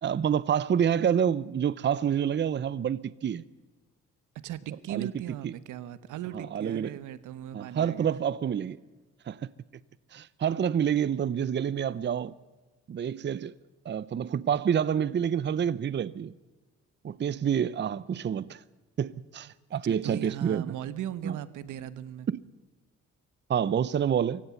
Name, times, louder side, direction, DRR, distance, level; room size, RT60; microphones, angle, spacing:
voice 1, 0.0-3.4 4.9-5.1 5.4-5.5 6.3-6.9 7.5-8.8 9.3-9.5 10.1-12.3 12.9-13.5 13.8-16.3 17.0-18.6 19.0-20.6 21.2-21.3 22.3-22.4 23.5-24.4, right 8 dB, 35° right, 0.7 m, -28 dB
voice 2, 4.4-8.1 19.8-22.3, right 12 dB, 85° right, 1.2 m, -38 dB
24.5 x 16.0 x 7.1 m
cardioid pair, 90°, 30 cm